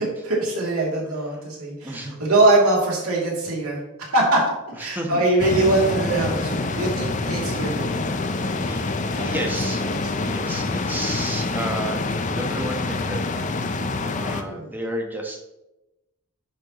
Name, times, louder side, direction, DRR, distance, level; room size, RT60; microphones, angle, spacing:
voice 1, 0.0-3.8 4.1-4.4 4.8-8.0 8.4-9.4 9.9-10.0 14.2-14.8, right 2 dB, 85° right, -3 dB, 2.8 m, -23 dB
voice 2, 1.8-2.2 4.8-5.2 8.5-8.9 9.2-9.8 10.2-12.0 12.3-13.6 14.0-15.4, right 1 dB, 10° right, 2 dB, 1.1 m, -32 dB
sound 1, 5.4-14.4, left 3 dB, 35° left, 0.6 m, -26 dB
10.5 x 6.9 x 3.0 m, 0.95 s
head